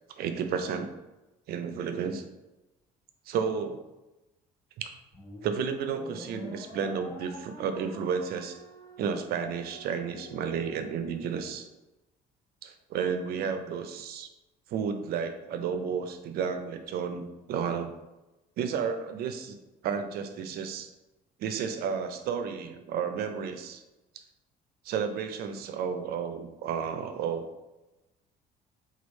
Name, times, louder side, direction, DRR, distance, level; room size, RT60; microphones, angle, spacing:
voice 1, 0.2-0.9 1.5-2.2 3.3-3.8 4.8-4.9 5.4-8.6 9.0-11.7 12.6-14.3 14.7-17.9 18.6-19.6 19.8-20.9 21.4-23.8 24.1-24.2 24.8-27.4, right 6 dB, 65° right, 8 dB, 0.4 m, -32 dB
sound 1, 5.1-11.6, left 1 dB, 85° left, 1.2 m, -47 dB
3.1 x 2.3 x 3.0 m, 1.0 s
cardioid pair, 110°, 17 cm